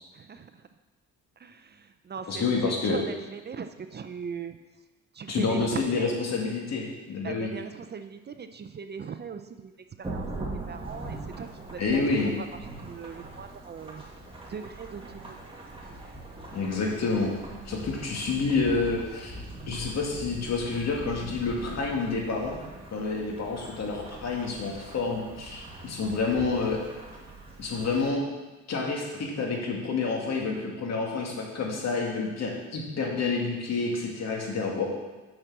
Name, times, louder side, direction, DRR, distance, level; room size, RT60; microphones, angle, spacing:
voice 1, 0.1-0.5 1.4-4.6 5.1-6.2 7.2-9.7 10.0-12.0 12.4-12.5 12.8-14.0 14.5-15.4 16.0-16.2 26.1-26.2, right 6 dB, 35° right, 9 dB, 0.5 m, -39 dB
voice 2, 2.3-3.0 5.3-7.5 11.8-12.3 16.5-17.3 17.7-22.6 22.9-26.8 27.6-28.2 28.7-34.8, left 4 dB, 60° left, -1 dB, 2.2 m, -28 dB
Thunderstorm / Rain, 10.0-28.1, right 2 dB, 15° right, 2.1 m, -42 dB
6.4 x 6.0 x 7.3 m, 1.2 s
cardioid pair, 90°, 30 cm